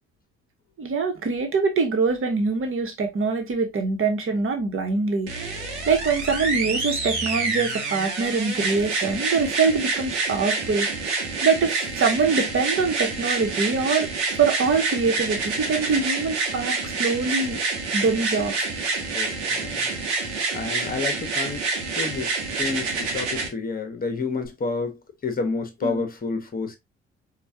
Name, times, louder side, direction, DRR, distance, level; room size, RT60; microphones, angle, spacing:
voice 1, 0.8-5.6 5.9-10.9 11.4-14.1 14.4-17.6 17.9-18.6 25.8-26.1, right 4 dB, 40° right, 1.3 m, -24 dB
sound 1, 5.3-23.5 24.5-24.6, right 3 dB, 80° right, 1.0 m, -27 dB
voice 2, 19.1-19.9 20.5-21.6 21.9-26.8, left 4 dB, 25° left, 1.2 m, -30 dB
4.5 x 2.5 x 2.7 m
figure-of-eight pair, 45°, 34 cm